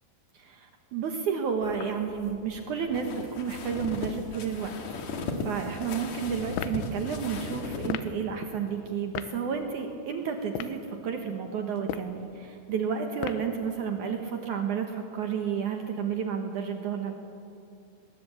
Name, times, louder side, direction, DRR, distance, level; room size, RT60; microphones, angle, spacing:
voice 1, 0.3-4.7 5.4-17.2, right 6 dB, 80° right, 4 dB, 1.7 m, -31 dB
sound 1, 1.6-7.9, left 3 dB, 50° left, 2.3 m, -37 dB
sound 2, 6.5-6.8 7.9-8.1 9.1-9.3 10.4-10.8 11.8-12.2 13.2-13.5, left 12 dB, 85° left, 3.3 m, -34 dB
21.5 x 20.0 x 8.4 m, 2.6 s
omnidirectional pair, 5.5 m